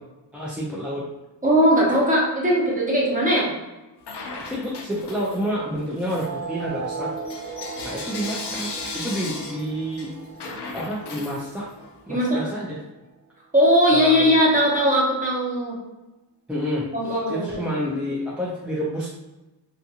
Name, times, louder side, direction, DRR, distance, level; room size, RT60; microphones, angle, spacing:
voice 1, 0.3-1.1 4.4-7.1 7.8-10.1 10.4-11.7 12.1-12.8 13.9-14.3 16.5-16.9 17.3-19.1, equal, 5° right, -7 dB, 0.4 m, -29 dB
voice 2, 1.4-3.5 12.1-12.5 13.5-15.8 16.9-17.7, equal, 20° right, -5 dB, 0.8 m, -19 dB
Bell / Coin (dropping), 4.0-5.6 6.0-11.9, left 3 dB, 80° left, 0.6 m, -37 dB
sound 1, 6.1-13.1, right 4 dB, 65° right, 0.6 m, -37 dB
2.5 x 2.5 x 2.7 m, 1.1 s
wide cardioid pair, 110°, 41 cm